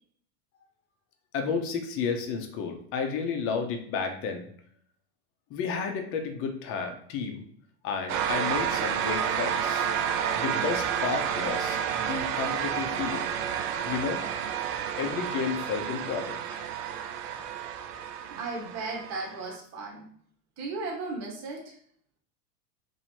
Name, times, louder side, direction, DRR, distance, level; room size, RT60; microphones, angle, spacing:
voice 1, 1.3-4.5 5.5-7.4 7.8-9.9 10.4-11.8 12.1-13.3 13.9-14.2 15.0-16.6, left 5 dB, 30° left, 5 dB, 0.6 m, -32 dB
sound 1, 8.1-19.5, right 8 dB, 55° right, 0.6 m, -30 dB
voice 2, 18.2-20.0 20.6-21.8, right 3 dB, 35° right, -1 dB, 1.0 m, -36 dB
2.9 x 2.7 x 4.4 m, 0.62 s
supercardioid pair, 135°, 48 cm